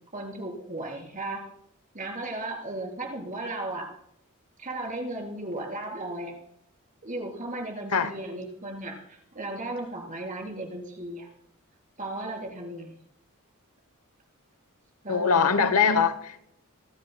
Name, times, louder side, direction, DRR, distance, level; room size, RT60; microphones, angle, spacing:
voice 1, 0.1-1.4 1.9-3.9 4.6-6.4 7.0-11.3 12.0-13.0 15.0-15.5, right 2 dB, 35° right, 3.7 m, -35 dB
voice 2, 15.1-16.4, left 6 dB, 80° left, 0.9 m, -22 dB
27.0 x 10.5 x 2.2 m
head